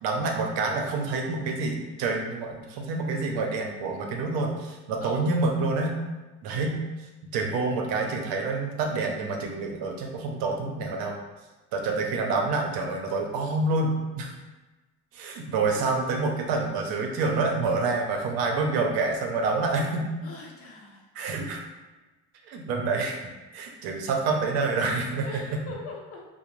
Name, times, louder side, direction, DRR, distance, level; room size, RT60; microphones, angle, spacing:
voice 1, 0.0-6.0 6.4-6.8 7.2-11.2 11.7-14.3 15.1-20.1 21.1-21.6 22.5-23.2 23.5-25.6, right 3 dB, 85° right, 1 dB, 0.6 m, -27 dB
voice 2, 20.2-21.1 25.2-26.3, left 2 dB, 40° left, 0 dB, 0.6 m, -40 dB
2.5 x 2.1 x 3.1 m, 1.2 s
cardioid pair, 125°, 35 cm